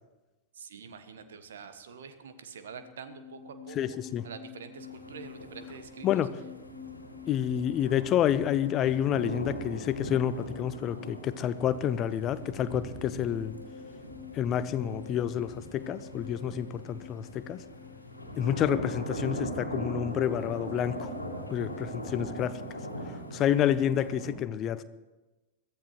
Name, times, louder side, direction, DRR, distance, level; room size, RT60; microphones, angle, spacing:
voice 1, 0.5-4.0 4.2-6.3, right 6 dB, 65° right, 10 dB, 1.1 m, -46 dB
sound 1, 2.4-20.9, left 5 dB, 70° left, 1.4 m, -49 dB
voice 2, 3.8-4.2 6.0-6.3 7.3-13.5 14.3-17.6 18.4-21.1 21.5-22.6 23.3-24.8, left 10 dB, 30° left, 14 dB, 0.7 m, -29 dB
sound 2, 4.8-24.3, equal, 85° left, 1.9 m, -40 dB
22.0 x 14.5 x 3.1 m, 1.1 s
figure-of-eight pair, 90°, 0 cm